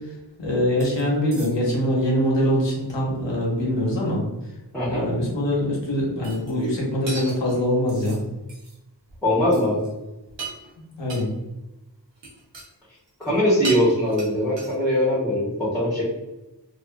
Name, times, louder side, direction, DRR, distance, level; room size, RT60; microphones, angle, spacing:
voice 1, 0.4-4.2 4.8-8.2 11.0-11.3, equal, 85° left, -3 dB, 0.8 m, -23 dB
sound 1, 0.8-1.1 1.3-1.8 6.2-6.8 7.1-8.2 8.5-8.8 9.1-9.2 9.5-9.9 10.3-10.7 11.1-11.3 12.2-12.7 13.0-13.4 13.6-15.0, right 3 dB, 90° right, 0.6 m, -37 dB
voice 2, 4.7-5.1 9.2-9.8 13.2-16.0, left 1 dB, ahead, -9 dB, 0.9 m, -21 dB
2.3 x 2.3 x 2.2 m, 0.98 s
wide cardioid pair, 60°, 43 cm